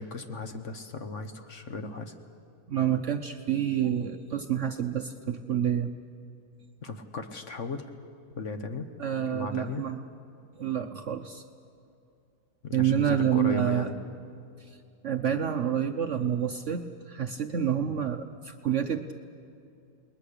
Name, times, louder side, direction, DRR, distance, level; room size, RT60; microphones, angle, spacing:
voice 1, 0.0-2.1 6.8-7.9 8.4-8.9 9.2-9.8 12.6-14.0, left 3 dB, 50° left, 7 dB, 1.3 m, -36 dB
voice 2, 2.7-5.9 9.0-10.0 10.6-11.4 12.7-13.9 14.7-14.8 15.0-19.1, right 9 dB, 55° right, 6 dB, 0.9 m, -28 dB
28.5 x 21.0 x 6.7 m, 2.5 s
omnidirectional pair, 1.8 m